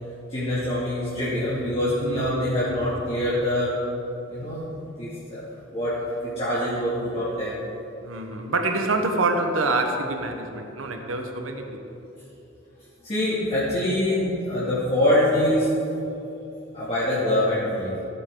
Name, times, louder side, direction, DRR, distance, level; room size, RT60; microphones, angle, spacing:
voice 1, 0.3-3.7 4.3-4.6 5.0-5.4 5.7-5.9 6.4-7.6 13.0-15.7 16.7-17.9, left 1 dB, 30° left, -12 dB, 2.4 m, -24 dB
voice 2, 2.0-2.9 8.0-11.8, right 2 dB, 80° right, 5 dB, 1.0 m, -26 dB
15.5 x 8.5 x 3.8 m, 3.0 s
head